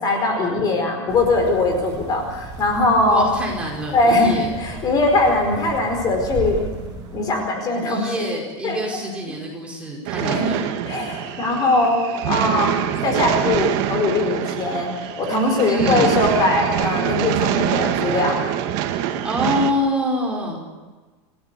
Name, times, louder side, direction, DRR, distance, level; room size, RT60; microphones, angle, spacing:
voice 1, 0.0-3.2 3.9-6.6 7.1-8.3 8.6-8.8 10.2-10.5 10.8-14.9 15.2-18.4, left 2 dB, 25° left, 4 dB, 4.7 m, -20 dB
sound 1, 1.1-7.5, right 5 dB, 30° right, 7.9 m, -35 dB
voice 2, 3.1-4.5 7.9-10.7 15.6-16.2 19.2-20.9, equal, 5° right, -2 dB, 4.9 m, -26 dB
sound 2, 10.1-19.7, right 11 dB, 50° right, 2.1 m, -24 dB
29.0 x 16.0 x 8.3 m, 1.3 s
supercardioid pair, 165°, 15 cm